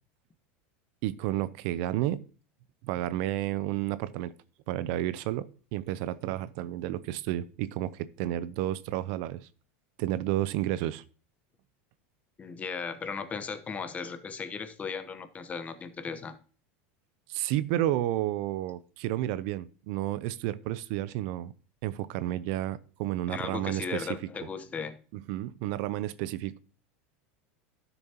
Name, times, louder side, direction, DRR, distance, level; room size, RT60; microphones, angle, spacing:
voice 1, 1.0-2.2 2.8-4.3 4.7-9.5 10.0-11.0 17.3-21.5 21.8-24.2 25.1-26.6, right 14 dB, 60° right, 0.5 m, -31 dB
voice 2, 12.4-16.4 23.3-25.0, left 5 dB, 20° left, 0.9 m, -36 dB
12.0 x 6.9 x 2.9 m
supercardioid pair, 130°, 7 cm